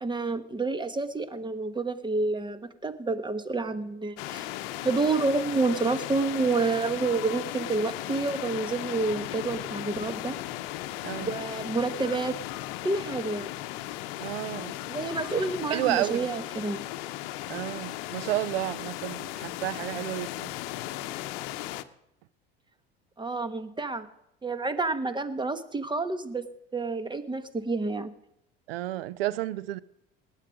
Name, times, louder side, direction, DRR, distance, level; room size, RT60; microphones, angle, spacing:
voice 1, 0.0-4.5 4.8-10.3 11.2-12.3 12.8-13.5 14.9-16.8 23.2-24.1 24.4-26.5 26.7-28.1, right 3 dB, 15° right, 1.3 m, -29 dB
sound 1, 4.2-21.8, left 15 dB, 75° left, 0.8 m, -36 dB
voice 2, 14.2-14.8 15.7-16.3 17.5-20.5 28.7-29.8, right 15 dB, 85° right, 0.6 m, -31 dB
18.5 x 9.4 x 5.1 m
hypercardioid pair, 75°, 29 cm